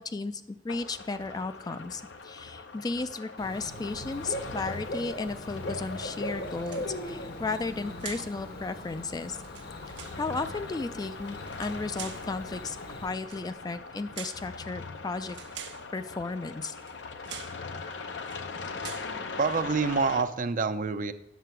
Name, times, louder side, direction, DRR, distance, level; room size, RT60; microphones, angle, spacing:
voice 1, 0.0-9.4 10.1-12.8 13.0-15.4 15.9-16.7, left 3 dB, 20° left, 12 dB, 0.3 m, -34 dB
sound 1, 0.7-20.2, left 4 dB, 80° left, 0.7 m, -41 dB
Bird / Cricket, 3.4-13.1, left 1 dB, 60° left, 1.1 m, -40 dB
sound 2, 6.6-7.2 8.0-8.4 9.3-10.2 11.4-12.3 13.2-13.5 14.1-14.5 15.3-15.9 16.8-17.0 17.2-17.6 18.2-18.5 18.8-19.1, right 9 dB, 85° right, 0.9 m, -44 dB
voice 2, 19.4-21.1, right 4 dB, 45° right, 11 dB, 0.5 m, -27 dB
9.3 x 6.7 x 4.5 m, 0.89 s
head